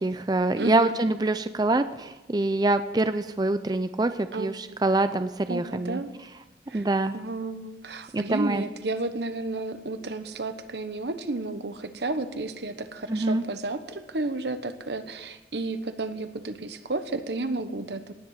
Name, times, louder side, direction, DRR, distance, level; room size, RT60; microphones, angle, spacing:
voice 1, 0.0-6.0 6.7-7.2 8.1-8.6 13.1-13.5, right 2 dB, 25° right, 11 dB, 0.5 m, -25 dB
voice 2, 0.6-1.0 4.3-4.8 5.5-6.1 6.7-6.9 7.1-18.1, right 2 dB, 75° right, 10 dB, 1.2 m, -32 dB
18.5 x 7.7 x 8.2 m, 1.1 s
head